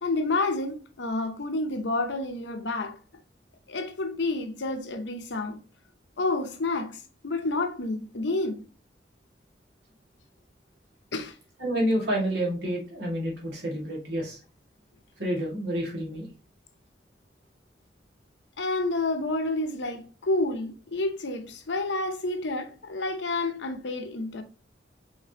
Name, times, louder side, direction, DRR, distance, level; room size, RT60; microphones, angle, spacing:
voice 1, 0.0-3.0 3.7-5.6 6.2-8.6 11.1-11.4 18.6-24.4, left 2 dB, 80° left, 0.8 m, -29 dB
voice 2, 11.6-14.4 15.2-16.3, equal, 65° right, 2.1 m, -29 dB
4.9 x 3.6 x 2.9 m
head